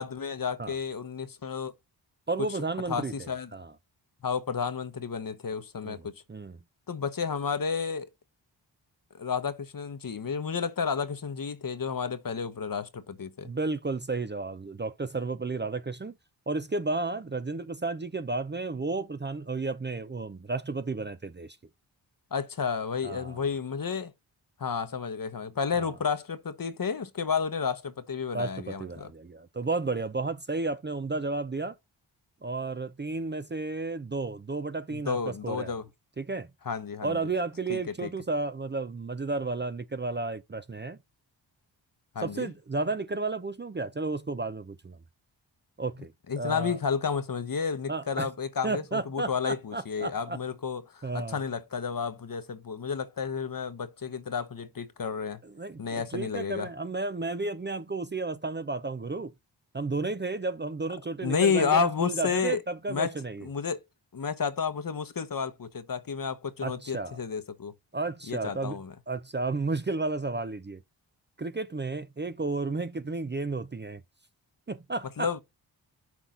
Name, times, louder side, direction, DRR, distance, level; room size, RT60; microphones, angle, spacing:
voice 1, 0.0-1.7 2.9-3.5 4.2-6.1 6.9-8.1 9.1-13.5 22.3-24.1 24.6-29.1 34.9-35.8 36.7-37.2 37.7-38.1 42.1-42.5 46.3-55.4 55.8-56.7 61.2-62.6 62.9-63.1 63.4-63.8 64.1-67.7 68.3-68.9 75.2-75.4, left 6 dB, 45° left, 1.0 m, -31 dB
voice 2, 2.3-3.7 5.8-6.6 13.4-16.1 16.5-21.6 23.0-23.4 25.7-25.9 28.3-31.7 32.4-35.8 36.2-36.5 37.0-41.0 42.2-45.0 45.8-46.1 46.4-46.8 47.9-48.3 48.6-50.4 51.0-51.4 55.4-59.3 59.7-63.5 66.6-67.2 67.9-68.8 69.1-70.8 71.4-74.0 74.7-75.4, right 3 dB, 25° right, 0.6 m, -32 dB
6.0 x 4.3 x 3.8 m
cardioid pair, 40°, 46 cm